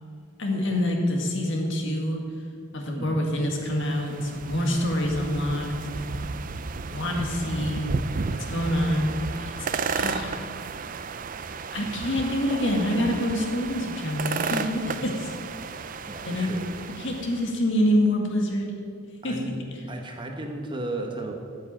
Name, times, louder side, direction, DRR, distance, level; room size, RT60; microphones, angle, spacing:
voice 1, 0.4-2.2 2.7-5.7 6.9-7.9 8.5-10.4 11.7-15.3 16.2-16.5 17.0-18.7 19.2-19.5, left 1 dB, 55° left, 1 dB, 1.9 m, -26 dB
sound 1, 3.5-17.5, right 4 dB, 40° right, 0.4 m, -33 dB
voice 2, 15.7-16.7 19.2-19.6 19.9-21.3, right 2 dB, 20° right, 3 dB, 1.0 m, -35 dB
9.4 x 8.0 x 8.8 m, 2.4 s
head